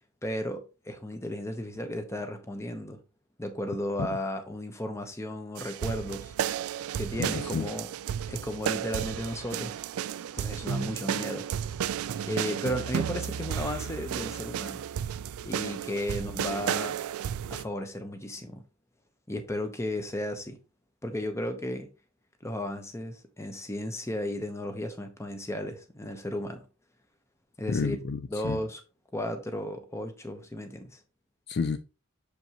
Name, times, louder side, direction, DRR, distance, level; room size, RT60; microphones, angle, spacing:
voice 1, 0.2-3.0 3.4-6.3 7.0-7.9 8.3-9.8 10.3-11.5 12.2-14.8 15.4-17.0 17.5-18.6 19.3-20.6 21.0-21.9 22.4-26.6 27.6-28.0 28.3-28.8 29.1-31.0, left 1 dB, 15° left, 0.9 m, -34 dB
sound 1, 5.6-17.6, right 9 dB, 90° right, 0.3 m, -33 dB
voice 2, 7.2-7.6 27.7-28.6 31.5-31.8, left 5 dB, 50° left, 0.4 m, -30 dB
6.7 x 5.2 x 3.0 m
head